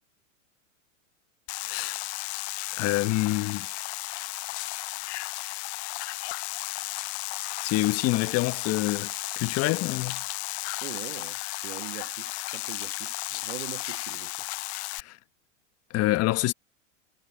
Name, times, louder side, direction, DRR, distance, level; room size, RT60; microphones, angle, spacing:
sound 1, 1.5-15.0, left 22 dB, 60° left, 0.6 m, -34 dB
voice 1, 1.7-2.1 2.8-3.7 7.6-10.2 15.0-15.2 15.9-16.5, left 18 dB, 40° left, 1.4 m, -27 dB
voice 2, 10.8-14.5, right 20 dB, 60° right, 1.5 m, -42 dB
hypercardioid pair, 120°, 38 cm